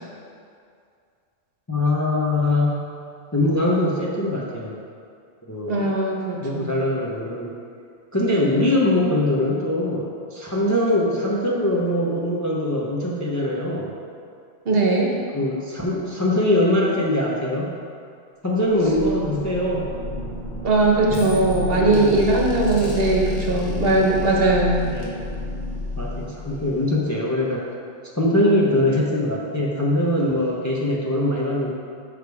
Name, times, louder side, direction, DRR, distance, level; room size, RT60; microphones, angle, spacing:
voice 1, 1.7-2.8 3.3-4.8 5.5-5.9 6.4-7.5 8.1-13.9 15.3-17.7 18.4-20.0 21.7-22.1 22.8-23.0 24.9-25.2 26.0-27.7 28.2-31.7, left 1 dB, 20° left, -4 dB, 0.6 m, -22 dB
voice 2, 5.7-6.7 8.3-8.5 14.6-15.1 20.6-24.8, right 2 dB, 60° right, -2 dB, 1.1 m, -20 dB
sound 1, 18.6-27.1, left 2 dB, 80° left, 1.4 m, -31 dB
6.6 x 5.0 x 4.7 m, 2.3 s
omnidirectional pair, 1.1 m